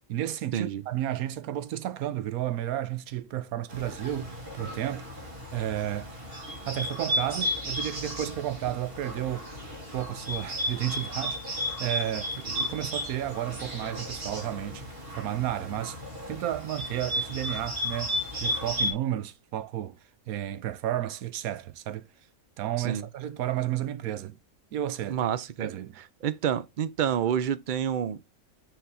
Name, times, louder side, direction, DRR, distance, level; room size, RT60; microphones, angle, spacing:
voice 1, 0.1-5.1 5.5-6.1 6.6-9.5 9.9-16.0 16.3-20.0 20.3-22.1 22.6-24.4 24.7-25.3 25.6-26.0, right 12 dB, 80° right, 1.1 m, -32 dB
Bird, 3.7-18.9, equal, 40° right, 2.4 m, -34 dB
voice 2, 25.1-25.7 26.2-28.4, right 9 dB, 60° right, 0.5 m, -29 dB
6.8 x 4.1 x 3.7 m
omnidirectional pair, 1.5 m